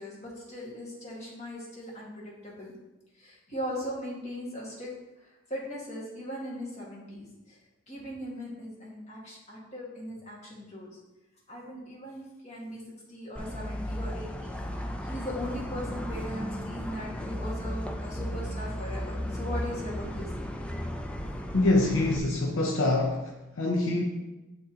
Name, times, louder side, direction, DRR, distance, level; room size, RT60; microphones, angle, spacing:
voice 1, 0.0-2.7 3.1-4.9 5.2-7.6 7.9-11.0 11.5-20.3, equal, 35° left, -4 dB, 1.7 m, -39 dB
sound 1, 13.4-22.2, equal, 5° left, 0.4 m, -35 dB
voice 2, 21.5-24.0, left 2 dB, 75° left, 0 dB, 0.6 m, -25 dB
9.0 x 3.9 x 2.8 m, 1.0 s
head